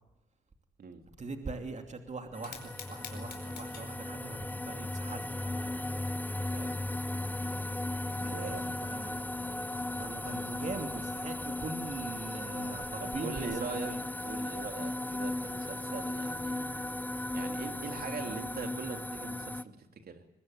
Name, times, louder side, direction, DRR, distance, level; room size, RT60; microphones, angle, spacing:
voice 1, 1.2-5.8 8.1-9.2 10.0-14.0, right 3 dB, 35° right, 5 dB, 2.8 m, -42 dB
Fire, 2.3-11.1, left 6 dB, 60° left, 4.9 m, -54 dB
sound 1, 2.3-19.6, left 1 dB, 10° left, 0.8 m, -36 dB
voice 2, 8.3-9.0 13.0-16.9 17.3-20.2, right 5 dB, 50° right, 5 dB, 3.3 m, -42 dB
22.0 x 21.0 x 9.3 m, 0.96 s
supercardioid pair, 70°, 19 cm